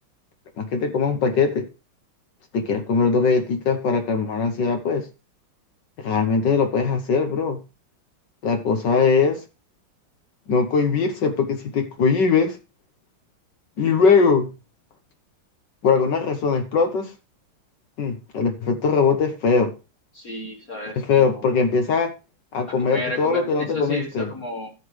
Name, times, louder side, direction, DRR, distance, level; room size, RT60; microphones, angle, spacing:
voice 1, 0.6-1.7 2.5-5.1 6.0-7.6 8.4-9.4 10.5-12.6 13.8-14.5 15.8-17.1 18.0-19.7 21.0-22.1 22.5-24.3, left 5 dB, 60° left, 6 dB, 1.5 m, -21 dB
voice 2, 20.1-21.6 22.7-24.7, left 2 dB, 45° left, 0 dB, 1.7 m, -32 dB
13.0 x 7.9 x 3.2 m, 0.28 s
omnidirectional pair, 2.4 m